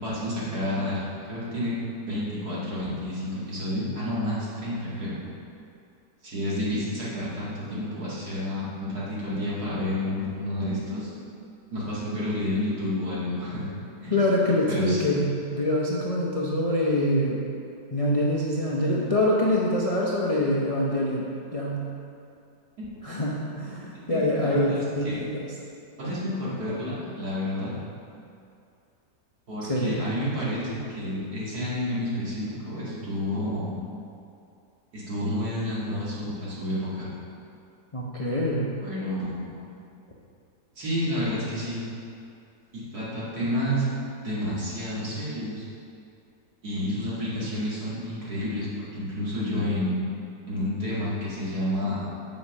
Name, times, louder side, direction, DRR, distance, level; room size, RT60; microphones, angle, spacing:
voice 1, 0.0-1.7 2.0-5.2 6.2-11.1 11.7-13.7 14.0-14.1 14.7-15.0 22.8-22.9 24.1-25.1 26.0-27.7 29.5-33.7 34.9-37.1 38.8-39.5 40.8-41.8 42.7-43.9 44.2-45.6 46.6-50.0 50.5-52.0, left 1 dB, 60° right, -8 dB, 2.8 m, -30 dB
voice 2, 14.1-17.4 17.9-21.9 23.0-25.5 29.6-30.0 37.9-38.7, left 1 dB, 35° left, -5 dB, 0.5 m, -25 dB
7.3 x 5.2 x 7.1 m, 2.6 s
omnidirectional pair, 1.9 m